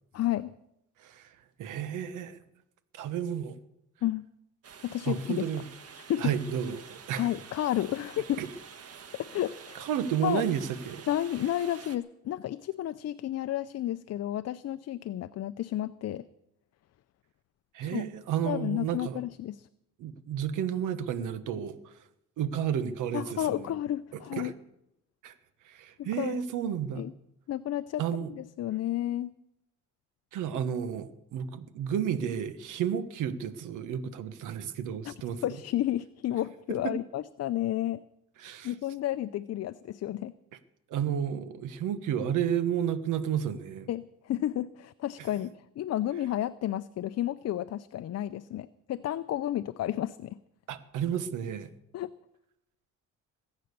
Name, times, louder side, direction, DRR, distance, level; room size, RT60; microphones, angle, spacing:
voice 1, 0.1-0.5 4.0-4.2 4.8-5.4 6.1-6.3 7.2-8.4 9.2-9.9 10.2-10.4 11.1-16.2 17.8-18.0 18.4-19.7 23.1-24.5 26.0-26.4 26.9-27.1 27.5-28.0 28.3-29.3 35.0-35.1 35.4-38.0 38.6-40.3 43.9-50.4 51.9-52.1, left 12 dB, 55° left, 12 dB, 0.6 m, -31 dB
voice 2, 1.0-1.3 1.6-2.4 2.9-3.6 5.1-5.6 6.2-7.3 8.4-8.5 9.7-11.0 17.7-19.2 20.0-21.9 22.4-23.7 24.1-24.5 25.2-25.3 25.6-27.0 28.0-28.3 30.3-35.4 36.8-36.9 38.4-38.7 40.9-43.9 50.7-51.7, right 9 dB, 85° right, 13 dB, 1.3 m, -32 dB
sound 1, 4.6-12.0, right 6 dB, 50° right, 1.5 m, -48 dB
21.5 x 9.0 x 6.8 m, 0.82 s
cardioid pair, 90°, 30 cm